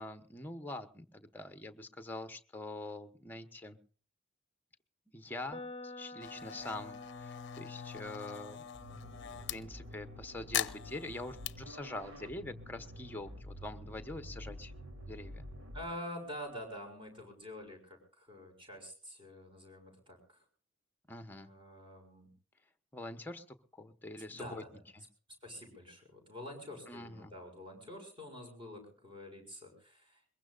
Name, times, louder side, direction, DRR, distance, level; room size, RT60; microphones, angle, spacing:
voice 1, 0.0-3.8 5.1-8.6 9.5-14.7 15.1-15.4 21.1-21.5 22.9-24.6 24.9-25.0 26.9-27.3, left 2 dB, 10° left, 8 dB, 1.1 m, -44 dB
sound 1, 5.5-13.4, left 2 dB, 25° left, 0.8 m, -52 dB
sound 2, 6.2-9.6 10.5-11.5, left 11 dB, 60° left, 0.7 m, -41 dB
sound 3, 8.7-15.8, equal, 85° right, 3.4 m, -49 dB
voice 2, 15.7-20.4 21.3-22.3 24.2-24.7 25.4-30.2, equal, 25° right, 4 dB, 6.5 m, -47 dB
22.5 x 22.0 x 2.5 m, 0.40 s
head